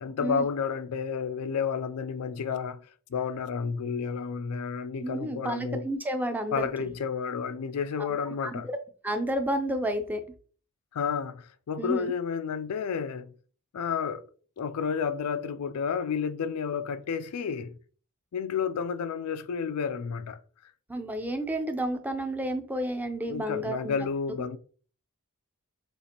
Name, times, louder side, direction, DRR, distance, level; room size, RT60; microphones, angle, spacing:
voice 1, 0.0-2.8 3.1-5.9 6.5-8.7 10.9-13.3 13.7-14.2 14.6-17.7 18.3-20.4 23.3-24.6, left 6 dB, 80° left, 0.4 m, -31 dB
voice 2, 5.0-6.6 8.0-8.1 8.4-8.8 9.0-10.2 11.8-12.1 20.9-24.1, right 1 dB, 10° right, 0.5 m, -31 dB
6.7 x 2.5 x 2.9 m
head